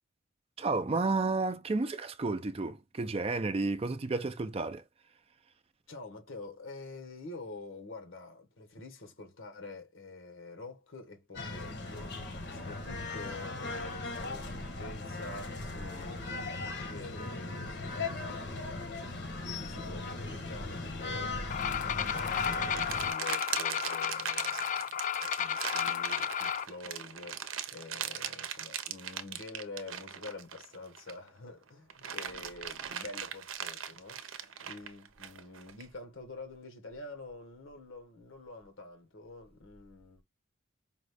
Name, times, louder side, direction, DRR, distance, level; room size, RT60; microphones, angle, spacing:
voice 1, 0.6-5.5, right 3 dB, 30° right, 0.4 m, -32 dB
voice 2, 5.9-40.2, left 3 dB, 80° left, 1.3 m, -47 dB
sound 1, 11.3-23.1, left 2 dB, 60° left, 1.1 m, -38 dB
sound 2, 21.5-26.6, left 9 dB, 40° left, 0.3 m, -33 dB
sound 3, 22.0-31.3 31.7-35.9, right 9 dB, 80° right, 0.7 m, -39 dB
5.1 x 2.4 x 3.3 m
head